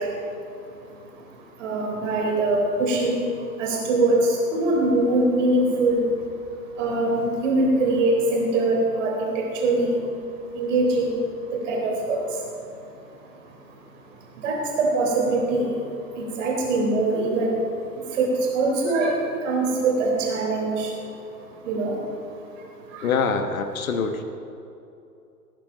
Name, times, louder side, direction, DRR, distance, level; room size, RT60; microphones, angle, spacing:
voice 1, 0.0-6.1 6.7-10.1 10.5-12.4 13.4-13.8 14.0-20.9 21.5-22.0 22.3-22.6 22.9-23.1, right 2 dB, 50° right, -1 dB, 4.0 m, -24 dB
voice 2, 23.0-24.2, left 5 dB, 55° left, 7 dB, 1.3 m, -24 dB
18.5 x 9.6 x 5.2 m, 2.7 s
figure-of-eight pair, 110°, 48 cm